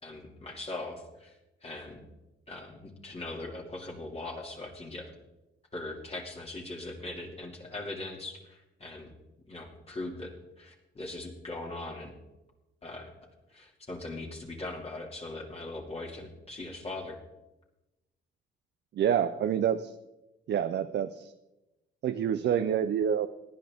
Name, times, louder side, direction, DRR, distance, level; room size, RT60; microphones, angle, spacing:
voice 1, 0.0-1.4 1.6-2.0 2.5-5.1 5.7-9.1 9.5-12.1 12.8-13.1 13.5-17.2, left 2 dB, 30° left, -1 dB, 2.5 m, -40 dB
voice 2, 18.9-19.9 20.5-21.3 22.0-23.3, right 9 dB, 60° right, 10 dB, 0.6 m, -27 dB
18.0 x 10.5 x 3.6 m, 0.97 s
cardioid pair, 90°, 20 cm